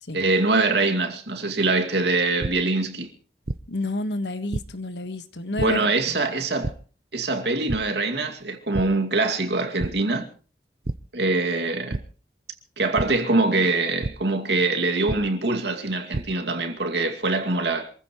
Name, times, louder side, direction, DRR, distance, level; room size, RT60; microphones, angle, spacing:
voice 1, 0.1-3.1 5.5-6.7 7.1-10.3 11.1-12.0 12.8-17.9, right 3 dB, 75° right, 2.4 m, -23 dB
sound 1, 2.4-2.5 3.5-3.6 4.5-4.6 5.6-5.7 6.6-6.7 7.7-7.8 8.2-8.4 8.7-8.8 9.8-9.9 10.8-11.0 11.9-12.0 13.0-13.1 14.0-14.1 15.1-15.2 15.9-16.2, right 2 dB, 55° right, 0.7 m, -27 dB
voice 2, 3.7-5.9, left 2 dB, 85° left, 1.5 m, -30 dB
27.0 x 15.0 x 3.1 m
head